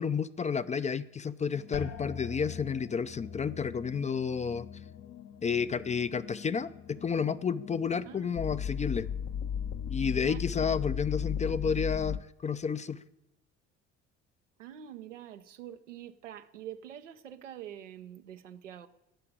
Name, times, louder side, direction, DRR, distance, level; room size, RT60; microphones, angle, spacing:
voice 1, 0.0-4.7 5.4-9.1 9.9-13.0, left 6 dB, 20° left, 0.5 m, -31 dB
sound 1, 1.5-12.2, left 8 dB, 50° left, 0.9 m, -38 dB
sound 2, 1.7-7.4 7.7-8.4 8.9-9.3, left 7 dB, 70° left, 2.2 m, -46 dB
voice 2, 10.1-10.4 14.6-18.9, right 11 dB, 75° right, 0.8 m, -45 dB
18.0 x 6.7 x 8.7 m
figure-of-eight pair, 55°, 37 cm